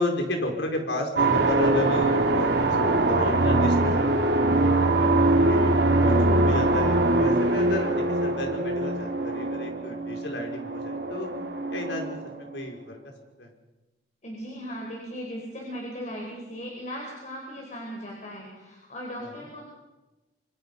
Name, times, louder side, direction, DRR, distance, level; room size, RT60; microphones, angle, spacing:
voice 1, 0.0-2.5 2.8-4.1 4.4-5.7 6.0-11.3 11.7-13.0 13.4-13.5 19.2-19.3, left 1 dB, 85° left, 3 dB, 4.9 m, -32 dB
sound 1, 1.2-12.6, right 2 dB, 70° right, 3.0 m, -23 dB
voice 2, 14.2-19.6, equal, 40° left, -1 dB, 4.8 m, -37 dB
25.5 x 25.0 x 5.5 m, 1.1 s
head